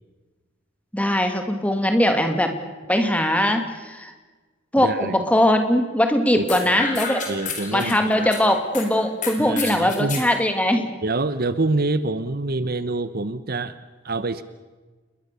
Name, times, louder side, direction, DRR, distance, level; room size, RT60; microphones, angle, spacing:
voice 1, 0.9-2.5 2.9-4.1 4.7-7.2 7.7-10.8, left 1 dB, 5° left, 6 dB, 2.5 m, -20 dB
voice 2, 4.8-5.2 6.4-6.5 7.3-8.3 9.5-10.2 11.0-13.7 14.0-14.4, right 2 dB, 50° right, 14 dB, 0.9 m, -26 dB
sound 1, 6.5-8.9 9.2-10.3, left 5 dB, 40° left, 4.7 m, -30 dB
29.5 x 22.0 x 6.9 m, 1.3 s
head